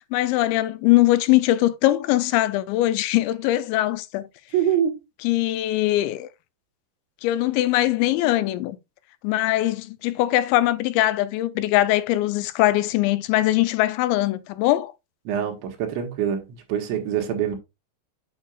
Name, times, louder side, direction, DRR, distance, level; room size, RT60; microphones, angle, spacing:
voice 1, 0.1-4.3 5.2-6.3 7.2-8.8 9.2-14.9, left 15 dB, 90° left, 2.9 m, -21 dB
voice 2, 4.5-5.0 15.3-17.6, right 9 dB, 85° right, 3.7 m, -25 dB
8.9 x 6.6 x 2.4 m
omnidirectional pair, 5.2 m